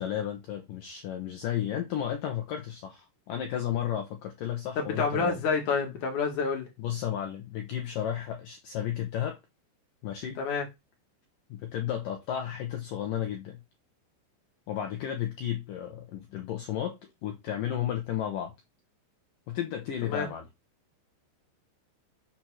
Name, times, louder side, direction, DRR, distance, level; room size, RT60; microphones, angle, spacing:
voice 1, 0.0-5.4 6.8-9.4 10.0-10.4 11.5-13.6 14.7-18.5 19.5-20.4, left 10 dB, 85° left, 1.9 m, -33 dB
voice 2, 4.8-6.7 10.4-10.7 20.0-20.3, left 5 dB, 55° left, 2.7 m, -28 dB
7.0 x 4.4 x 6.3 m
omnidirectional pair, 5.4 m